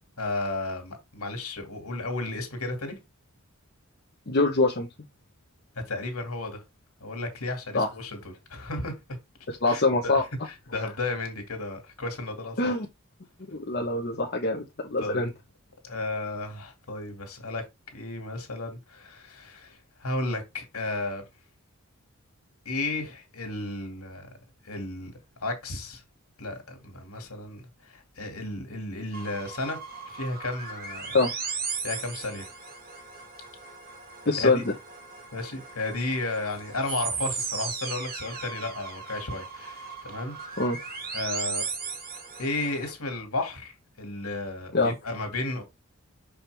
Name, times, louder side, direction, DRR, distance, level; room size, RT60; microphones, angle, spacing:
voice 1, 0.2-3.0 5.9-6.6 7.0-8.9 9.7-12.7 15.0-15.3 15.8-17.6 17.9-21.2 22.7-24.3 24.6-25.1 25.4-26.0 26.4-29.8 30.1-31.2 31.8-32.5 34.4-34.6 35.3-40.6 41.1-41.6 42.4-45.6, left 2 dB, 85° left, 2.4 m, -33 dB
voice 2, 4.3-4.9 7.7-7.9 9.6-10.2 12.6-12.9 13.5-15.3 31.1-31.3 34.2-34.6 40.6-40.8 44.7-45.0, left 3 dB, 50° left, 1.1 m, -24 dB
sound 1, 29.1-42.9, right 5 dB, 45° right, 1.5 m, -37 dB
6.1 x 5.1 x 3.4 m
head